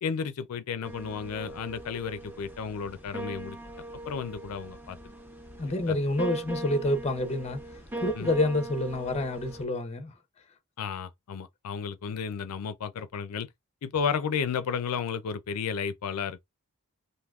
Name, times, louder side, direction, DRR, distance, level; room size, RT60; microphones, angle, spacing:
voice 1, 0.0-3.6 4.1-5.0 5.6-5.9 8.2-8.3 10.8-13.5 13.8-16.4, left 6 dB, 85° left, 0.4 m, -33 dB
sound 1, 0.8-9.6, right 1 dB, 10° right, 0.7 m, -41 dB
voice 2, 5.6-7.6 8.0-10.1, left 1 dB, 30° left, 0.5 m, -28 dB
3.4 x 2.6 x 2.3 m
head